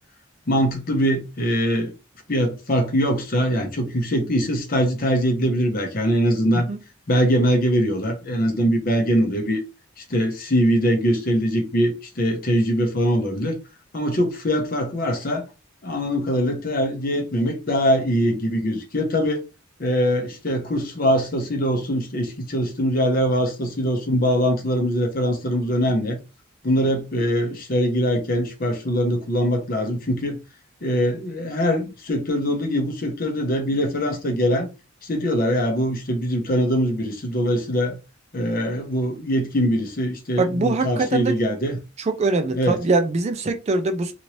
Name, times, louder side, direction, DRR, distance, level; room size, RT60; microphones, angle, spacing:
voice 1, 0.5-1.9 2.3-6.7 7.1-9.6 10.0-13.6 13.9-15.4 15.8-19.4 19.8-26.2 26.6-30.4 30.8-34.7 35.0-38.0 38.3-41.8 42.5-42.8, equal, 45° left, 0.8 m, -22 dB
voice 2, 40.4-41.3 42.0-44.1, right 3 dB, 30° right, 0.4 m, -22 dB
2.9 x 2.6 x 3.0 m
head